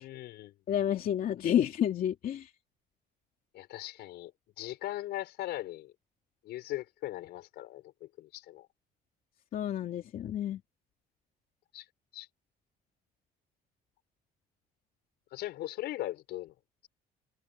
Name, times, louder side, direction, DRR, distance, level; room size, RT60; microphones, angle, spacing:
voice 1, 0.0-0.5 3.5-4.3 4.6-5.9 6.4-8.7 11.7-11.9 12.1-12.3 15.3-16.5, left 15 dB, 80° left, 5.8 m, -39 dB
voice 2, 0.7-2.5 9.5-10.6, left 10 dB, 55° left, 2.7 m, -30 dB
cardioid pair, 110°, 17 cm